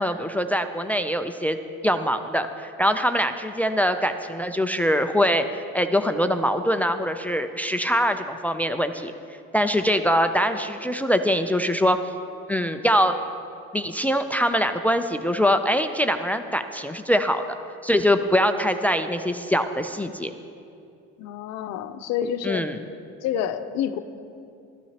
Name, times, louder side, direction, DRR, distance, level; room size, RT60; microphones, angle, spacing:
voice 1, 0.0-1.6 1.8-5.4 5.7-9.1 9.5-12.0 12.5-13.2 13.7-17.4 17.8-20.3 22.4-22.8, equal, 5° left, 8 dB, 0.4 m, -23 dB
voice 2, 21.2-22.7 23.2-24.0, left 9 dB, 60° left, 10 dB, 0.7 m, -28 dB
15.5 x 13.5 x 2.9 m, 2.6 s
supercardioid pair, 110°, 29 cm